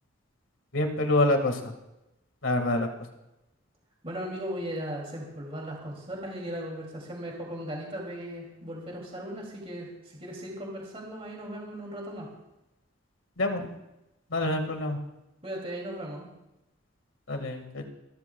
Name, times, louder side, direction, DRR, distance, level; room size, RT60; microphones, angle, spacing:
voice 1, 0.7-1.7 2.4-2.9 13.4-13.7 14.3-15.0 17.3-17.9, left 2 dB, 80° left, 5 dB, 1.7 m, -26 dB
voice 2, 4.0-12.3 15.4-16.3, equal, 30° right, -1 dB, 2.6 m, -37 dB
27.0 x 13.0 x 2.3 m, 0.93 s
head